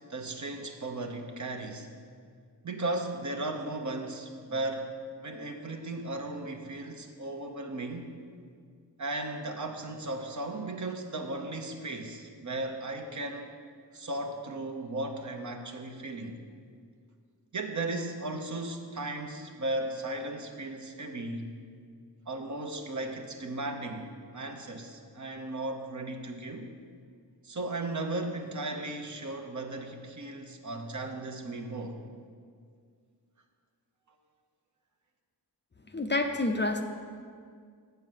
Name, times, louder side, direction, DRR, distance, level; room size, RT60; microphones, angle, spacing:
voice 1, 0.1-1.9 2.6-4.9 5.2-8.1 9.0-13.5 13.9-16.4 17.5-21.5 22.3-26.7 27.4-32.0, right 2 dB, 45° right, 4 dB, 1.0 m, -36 dB
voice 2, 35.9-36.8, left 2 dB, 25° left, 5 dB, 0.6 m, -28 dB
7.9 x 6.9 x 7.5 m, 2.1 s
wide cardioid pair, 100°, 42 cm